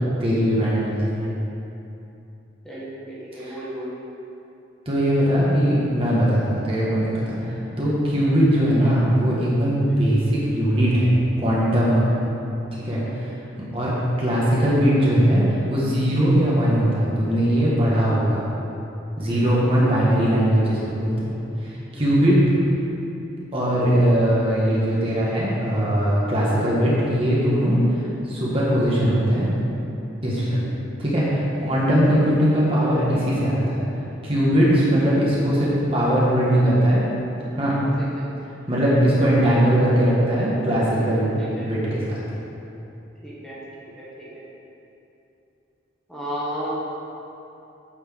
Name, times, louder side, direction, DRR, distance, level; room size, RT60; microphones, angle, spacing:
voice 1, 0.2-1.3 3.3-3.6 4.8-11.1 11.4-12.1 12.7-13.3 13.7-13.9 14.2-18.4 19.2-21.3 21.6-22.4 23.5-29.5 30.2-30.6 31.0-33.9 34.2-37.0 37.5-37.7 38.7-41.3 41.6-42.2, equal, 30° right, -7 dB, 1.5 m, -20 dB
voice 2, 2.6-3.9 9.9-10.2 12.0-12.2 12.9-13.3 16.2-16.3 19.3-19.7 21.9-22.1 30.6-30.8 32.1-32.2 34.7-34.8 38.0-38.3 41.4-41.7 43.2-43.6 44.0-44.4 46.1-46.7, equal, 5° left, -9 dB, 1.7 m, -35 dB
8.8 x 4.7 x 6.2 m, 2.8 s
head